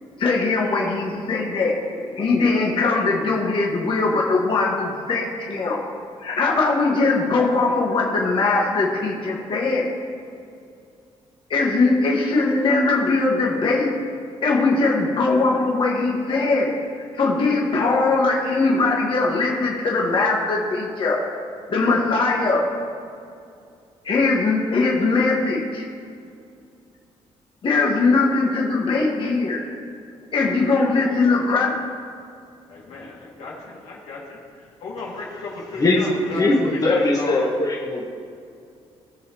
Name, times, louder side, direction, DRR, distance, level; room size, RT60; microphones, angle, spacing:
voice 1, 0.2-1.7 2.0-5.8 6.2-9.9 11.5-13.9 14.4-16.7 17.1-21.2 21.7-22.6 24.0-25.9 27.6-29.6 30.3-31.7, left 3 dB, 50° left, -3 dB, 1.6 m, -20 dB
voice 2, 32.7-34.4 34.8-37.5, left 3 dB, 90° left, -4 dB, 2.3 m, -33 dB
voice 3, 36.3-38.1, left 2 dB, 30° left, -3 dB, 1.6 m, -20 dB
19.5 x 6.7 x 3.0 m, 2.4 s
cardioid pair, 105°, 11 cm